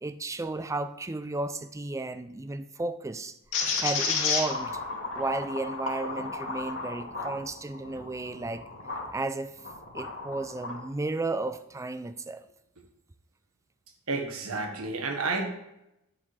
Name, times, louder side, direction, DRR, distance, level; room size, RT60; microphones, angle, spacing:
voice 1, 0.0-3.4 3.8-4.8 5.1-8.6 9.1-9.6 9.9-12.5, right 2 dB, 15° right, 0.4 m, -33 dB
sound 1, 3.5-9.1 9.6-10.8, left 4 dB, 65° left, 2.3 m, -32 dB
voice 2, 14.1-15.5, right 3 dB, 80° right, 1.4 m, -30 dB
10.0 x 8.7 x 3.3 m
head